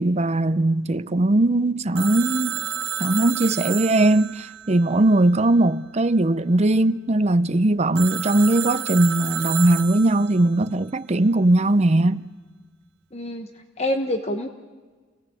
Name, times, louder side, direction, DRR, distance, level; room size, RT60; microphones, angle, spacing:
voice 1, 0.0-2.6 3.0-12.2, right 2 dB, 35° right, 0.7 m, -19 dB
Telephone, 2.0-5.6 8.0-10.5, right 10 dB, 65° right, 0.9 m, -31 dB
voice 2, 13.1-13.5 13.8-14.5, left 1 dB, 35° left, 1.3 m, -26 dB
29.5 x 18.0 x 8.4 m
head